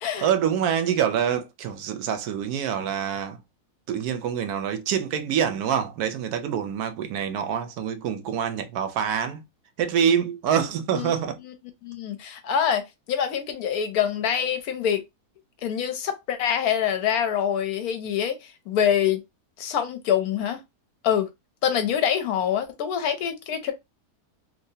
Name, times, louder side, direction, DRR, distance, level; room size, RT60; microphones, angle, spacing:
voice 1, 0.2-3.4 3.9-9.4 9.8-11.4, right 8 dB, 75° right, 1.1 m, -26 dB
voice 2, 11.8-15.0 15.6-19.2 19.6-20.6 21.0-21.3 21.6-23.7, left 8 dB, 70° left, 1.0 m, -25 dB
3.0 x 2.7 x 2.7 m
omnidirectional pair, 1.7 m